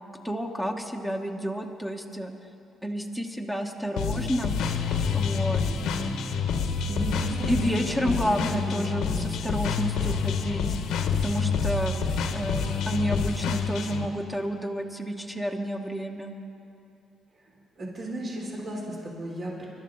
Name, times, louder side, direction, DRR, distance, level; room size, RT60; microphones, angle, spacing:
voice 1, 0.2-2.3 2.8-4.5 5.1-5.6 7.2-10.8 11.2-16.3, equal, 5° right, 3 dB, 1.1 m, -30 dB
sound 1, 4.0-14.1, left 6 dB, 85° left, 1.0 m, -28 dB
voice 2, 6.9-7.5 7.8-9.3 17.5-19.7, right 1 dB, 45° right, -3 dB, 3.4 m, -36 dB
23.5 x 12.0 x 3.9 m, 2.8 s
cardioid pair, 90°, 0 cm